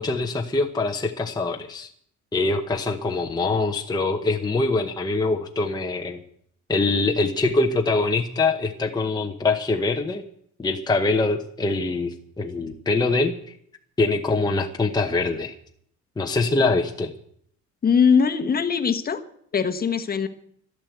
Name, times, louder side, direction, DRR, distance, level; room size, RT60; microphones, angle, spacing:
voice 1, 0.0-1.9 2.3-6.2 6.7-10.2 10.6-13.3 14.0-15.5 16.2-17.1, left 3 dB, 15° left, 3 dB, 0.9 m, -23 dB
voice 2, 17.8-19.2 19.5-20.3, left 6 dB, 30° left, 7 dB, 1.2 m, -21 dB
12.5 x 12.0 x 8.0 m, 0.67 s
cardioid pair, 145°, 29 cm